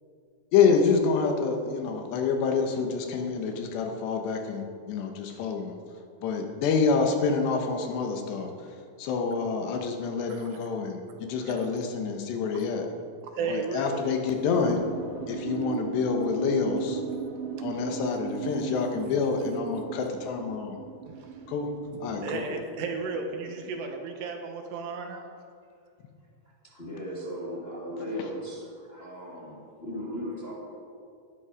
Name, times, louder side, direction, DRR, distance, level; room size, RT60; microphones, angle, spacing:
voice 1, 0.5-5.7 6.2-8.5 9.0-12.9 13.5-14.9 15.3-17.0 17.6-20.8 21.5-21.7 22.0-22.2, left 5 dB, 75° left, 4 dB, 3.3 m, -27 dB
voice 2, 10.3-10.6 11.4-11.7 13.2-14.0 19.0-19.3 19.7-19.8 21.1-21.5 21.9-25.3, right 4 dB, 75° right, 4 dB, 3.3 m, -35 dB
sound 1, 14.5-23.9, right 7 dB, 60° right, 2.7 m, -37 dB
voice 3, 26.6-30.5, equal, 25° left, -5 dB, 1.4 m, -37 dB
18.5 x 11.0 x 5.1 m, 2.4 s
omnidirectional pair, 5.1 m